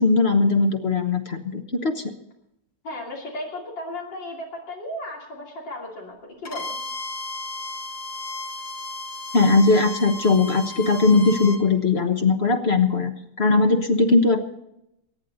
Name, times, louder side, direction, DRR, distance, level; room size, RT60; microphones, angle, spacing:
voice 1, 0.0-2.0 9.3-13.1 13.4-14.4, left 3 dB, 40° left, 7 dB, 1.3 m, -19 dB
voice 2, 2.8-6.8, left 1 dB, 90° left, -2 dB, 3.6 m, -35 dB
Bowed string instrument, 6.5-11.6, left 2 dB, 65° left, 2.2 m, -34 dB
23.5 x 10.0 x 4.1 m, 0.82 s
omnidirectional pair, 1.9 m